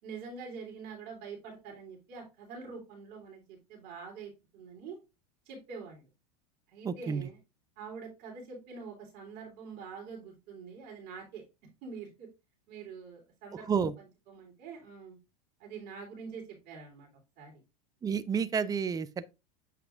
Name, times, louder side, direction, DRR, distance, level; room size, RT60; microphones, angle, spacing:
voice 1, 0.0-5.0 5.4-6.0 6.7-7.4 7.8-11.4 11.8-12.3 12.7-13.9 14.3-15.2 15.6-17.1 17.4-17.6, right 5 dB, 55° right, 3.3 m, -45 dB
voice 2, 6.8-7.3 13.7-13.9 18.0-19.3, right 6 dB, 20° right, 0.5 m, -30 dB
7.8 x 5.7 x 2.4 m
hypercardioid pair, 100°, 20 cm